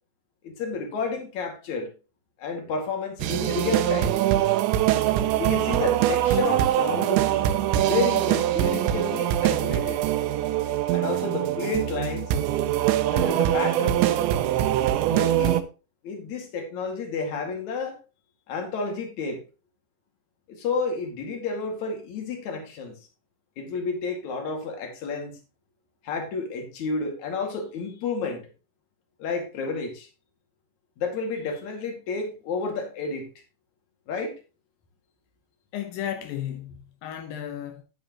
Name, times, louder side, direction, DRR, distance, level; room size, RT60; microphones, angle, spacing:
voice 1, 0.4-1.9 2.4-4.1 5.4-7.2 7.9-10.0 10.9-12.3 13.1-14.1 15.1-15.6 16.0-18.0 18.5-19.4 20.5-23.0 23.6-25.4 26.0-28.5 29.2-30.1 31.0-33.3 34.1-34.3, left 4 dB, 50° left, 2.9 m, -30 dB
sound 1, 3.2-15.6, right 12 dB, 80° right, 2.9 m, -23 dB
voice 2, 35.7-37.8, left 10 dB, 80° left, 2.0 m, -34 dB
10.0 x 9.8 x 3.0 m
omnidirectional pair, 5.5 m